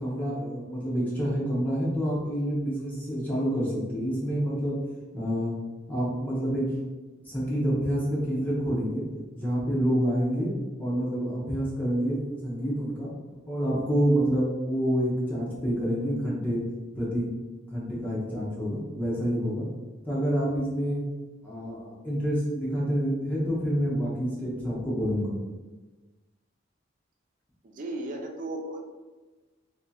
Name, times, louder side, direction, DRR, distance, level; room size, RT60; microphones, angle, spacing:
voice 1, 0.0-4.8 5.1-5.5 5.9-6.6 7.2-9.0 9.3-10.5 10.8-13.1 13.5-16.6 16.9-17.3 17.7-19.7 20.1-21.0 21.4-25.4, equal, 10° left, -7 dB, 0.7 m, -28 dB
voice 2, 27.6-28.8, right 1 dB, 40° right, 2 dB, 0.4 m, -35 dB
3.5 x 2.7 x 2.3 m, 1.2 s
head